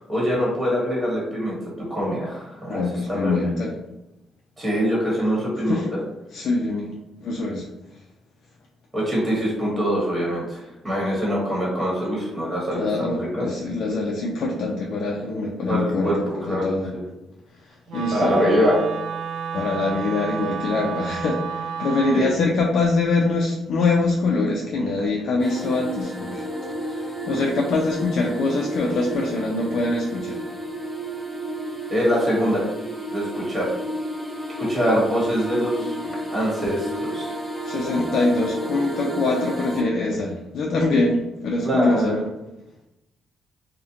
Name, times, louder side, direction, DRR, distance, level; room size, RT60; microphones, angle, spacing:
voice 1, 0.1-2.8 3.2-3.5 4.6-5.8 8.9-13.4 15.7-16.2 16.5-16.7 18.1-18.9 22.1-22.3 31.9-32.7 33.1-33.8 34.6-36.0 36.3-37.3 41.6-42.1, equal, 20° right, -5 dB, 1.2 m, -23 dB
voice 2, 2.7-3.7 5.7-5.9 6.3-8.0 12.7-16.9 17.5-18.4 19.5-26.4 26.8-30.5 36.0-36.2 37.6-42.2, left 3 dB, 65° left, -1 dB, 0.3 m, -24 dB
Wind instrument woodwind instrument, 17.9-22.3, right 7 dB, 75° right, 0.4 m, -31 dB
sound 1, 25.4-39.8, right 1 dB, ahead, 0.6 m, -32 dB
2.4 x 2.1 x 2.7 m, 0.96 s
cardioid pair, 90°, 0 cm